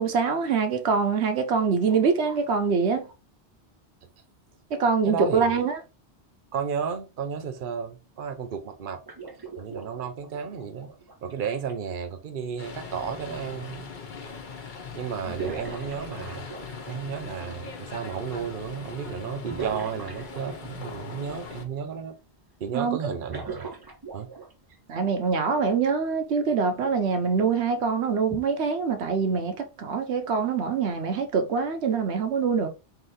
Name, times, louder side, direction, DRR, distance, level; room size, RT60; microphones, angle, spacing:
voice 1, 0.0-3.1 4.7-5.8 22.7-23.0 24.9-32.7, right 5 dB, 85° right, 1.0 m, -24 dB
voice 2, 5.0-5.6 6.5-9.0 9.6-10.9 11.2-13.9 14.9-16.4 16.9-22.1 22.6-23.7 24.1-24.3, right 7 dB, 55° right, 0.9 m, -33 dB
sound 1, 9.0-11.7 13.7-13.8 15.2-17.0 19.5-20.8 23.2-24.7 25.5-25.7 26.8-27.0 28.3-28.4, right 4 dB, 25° right, 0.6 m, -40 dB
sound 2, 12.6-21.6, left 5 dB, 50° left, 0.9 m, -40 dB
3.8 x 2.9 x 4.1 m
omnidirectional pair, 1.1 m